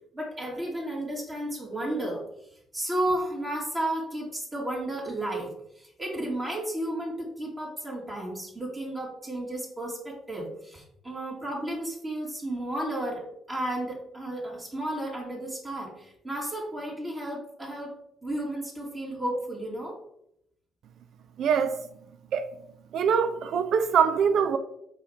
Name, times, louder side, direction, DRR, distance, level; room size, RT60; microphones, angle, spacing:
voice 1, 0.1-17.9 18.2-20.0, right 1 dB, 25° right, 2.5 m, -33 dB
voice 2, 21.4-21.9 22.3-22.5 22.9-24.6, right 7 dB, 65° right, 0.4 m, -23 dB
4.7 x 4.2 x 5.0 m
hypercardioid pair, 45°, 0 cm